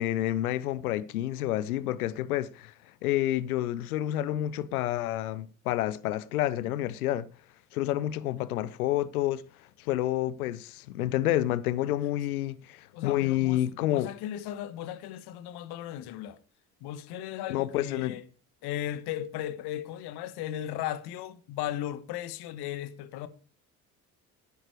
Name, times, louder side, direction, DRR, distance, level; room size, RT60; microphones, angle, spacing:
voice 1, 0.0-2.7 3.0-7.3 7.7-9.4 9.8-14.1 17.5-18.1, left 14 dB, 80° left, 0.7 m, -29 dB
voice 2, 12.9-16.4 16.8-18.2 18.6-23.3, left 11 dB, 60° left, 1.4 m, -36 dB
11.5 x 10.0 x 4.8 m
figure-of-eight pair, 50°, 43 cm